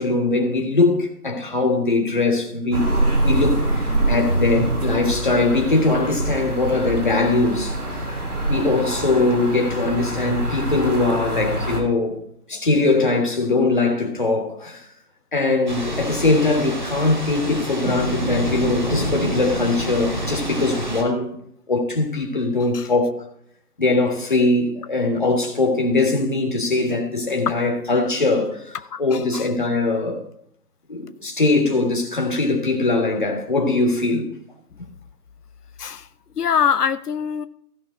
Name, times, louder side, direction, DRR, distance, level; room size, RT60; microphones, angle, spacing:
voice 1, 0.0-2.9 3.2-7.8 8.5-12.2 12.5-14.9 15.3-21.3 21.7-23.1 23.8-30.2 30.9-34.3, left 3 dB, 30° left, 1.6 m, -21 dB
sound 1, 2.7-11.8, right 1 dB, 70° right, 2.8 m, -24 dB
Thunder / Rain, 15.7-21.0, equal, 30° right, 1.2 m, -27 dB
voice 2, 28.9-29.5 35.8-36.1 36.4-37.5, left 7 dB, 80° left, 0.6 m, -23 dB
16.0 x 5.5 x 3.9 m
figure-of-eight pair, 160°, 46 cm